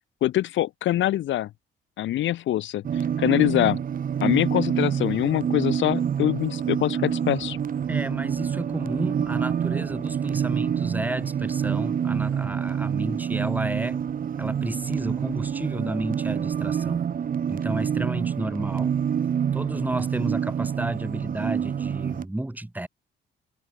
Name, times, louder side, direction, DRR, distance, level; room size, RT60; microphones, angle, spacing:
voice 1, 0.2-1.5 2.0-2.8 3.2-3.8 4.2-7.6, left 13 dB, 70° left, 0.7 m, -24 dB
sound 1, 2.8-22.2, right 8 dB, 45° right, 0.9 m, -27 dB
voice 2, 7.9-14.0 14.4-17.0 17.5-19.0 19.5-22.9, right 1 dB, 10° right, 2.2 m, -31 dB
cardioid pair, 90°, 20 cm